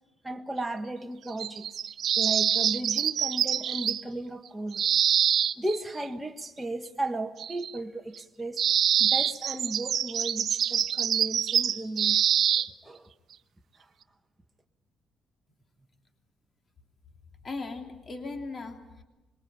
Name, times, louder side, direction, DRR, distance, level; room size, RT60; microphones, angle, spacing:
voice 1, 0.2-1.7 2.2-4.8 5.6-8.6 9.0-12.2 12.6-13.1 13.8-13.9, right 2 dB, 10° right, 1.4 m, -35 dB
sound 1, 1.3-4.0 4.7-5.8 7.4-7.8 8.2-8.3 8.6-12.7, right 9 dB, 65° right, 0.8 m, -25 dB
voice 2, 17.4-19.0, left 3 dB, 40° left, 2.9 m, -38 dB
26.0 x 22.0 x 8.8 m
cardioid pair, 90°, 0 cm